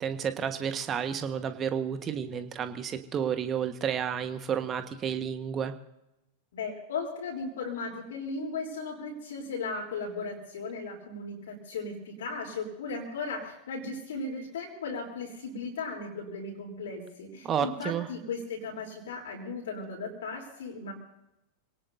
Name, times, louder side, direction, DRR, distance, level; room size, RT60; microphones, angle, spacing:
voice 1, 0.0-5.7 17.4-18.1, right 8 dB, 25° right, 9 dB, 1.5 m, -31 dB
voice 2, 6.5-20.9, left 4 dB, 60° left, -2 dB, 3.6 m, -36 dB
26.0 x 18.0 x 2.7 m, 0.89 s
figure-of-eight pair, 90°, 0 cm